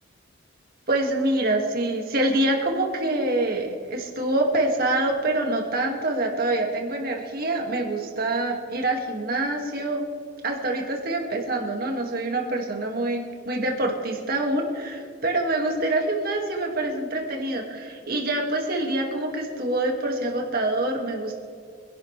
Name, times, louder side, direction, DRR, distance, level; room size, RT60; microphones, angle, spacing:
voice 1, 0.9-10.0 10.4-21.3, right 2 dB, 45° right, 0 dB, 2.2 m, -26 dB
25.5 x 11.5 x 3.4 m, 2.1 s
head